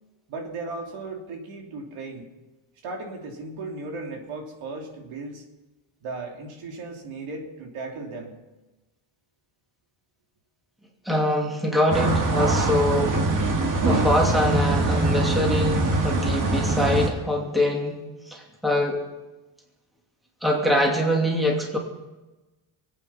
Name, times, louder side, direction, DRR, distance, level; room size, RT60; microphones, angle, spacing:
voice 1, 0.3-2.3 2.8-5.4 6.0-8.4, right 3 dB, 75° right, 1 dB, 3.2 m, -36 dB
voice 2, 11.0-13.2 13.8-19.0 20.4-21.8, left 1 dB, ahead, -1 dB, 2.5 m, -24 dB
sound 1, 11.9-17.1, right 2 dB, 40° right, 2.0 m, -23 dB
24.0 x 9.0 x 5.9 m, 1.1 s
cardioid pair, 130°, 50 cm